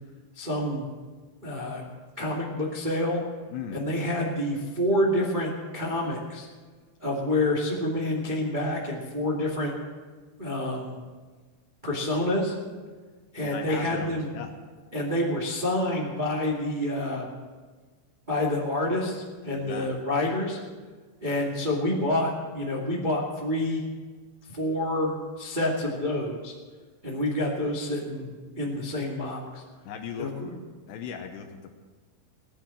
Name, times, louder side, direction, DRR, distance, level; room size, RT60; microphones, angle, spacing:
voice 1, 0.3-0.8 1.4-1.8 2.2-3.2 3.7-6.5 7.0-9.7 10.4-11.0 11.8-12.5 13.3-14.3 14.9-17.2 18.3-20.6 21.2-23.8 24.5-26.5 27.0-29.6 30.2-30.5, left 1 dB, 60° right, -3 dB, 0.5 m, -28 dB
voice 2, 3.5-3.8 13.4-14.5 19.5-19.9 29.9-30.3 30.9-31.7, left 7 dB, 75° left, 5 dB, 2.7 m, -37 dB
18.0 x 10.5 x 7.6 m, 1.4 s
omnidirectional pair, 5.7 m